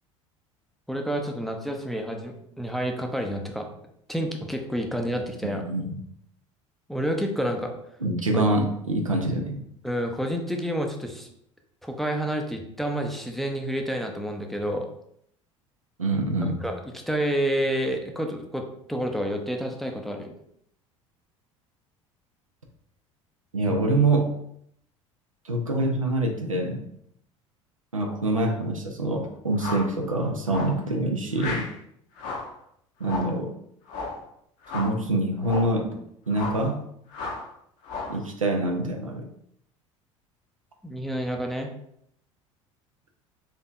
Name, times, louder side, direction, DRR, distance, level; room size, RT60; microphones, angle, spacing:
voice 1, 0.9-3.7 4.1-5.6 6.9-7.7 8.3-8.4 9.8-11.3 11.8-14.9 16.4-16.7 17.1-20.3 40.8-41.7, equal, ahead, 3 dB, 0.5 m, -29 dB
voice 2, 5.4-5.8 8.0-9.6 16.0-16.6 23.5-24.3 25.5-26.8 27.9-31.7 33.0-33.6 34.7-36.0 36.3-36.8 38.1-39.3, right 2 dB, 90° right, 3 dB, 0.5 m, -25 dB
sound 1, 29.6-29.9 30.5-30.8 31.4-31.7 32.2-32.5 33.0-33.4 33.9-34.2 34.6-35.0 35.4-35.8 36.3-36.7 37.1-37.5 37.8-38.2, left 3 dB, 50° left, 0.7 m, -34 dB
4.2 x 2.6 x 2.4 m, 0.71 s
figure-of-eight pair, 65°, 17 cm